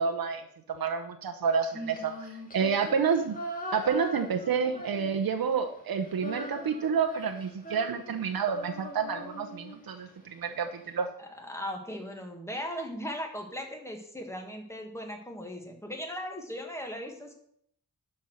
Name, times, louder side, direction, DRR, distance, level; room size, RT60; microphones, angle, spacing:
voice 1, 0.0-2.1 2.5-3.4 3.7-11.1, right 6 dB, 75° right, 5 dB, 0.9 m, -29 dB
Female singing, 1.6-5.5 5.8-10.1, left 1 dB, 25° left, 1.8 m, -41 dB
voice 2, 11.2-17.3, equal, 10° left, 2 dB, 1.7 m, -38 dB
11.0 x 4.6 x 6.5 m, 0.67 s
wide cardioid pair, 145°, 35 cm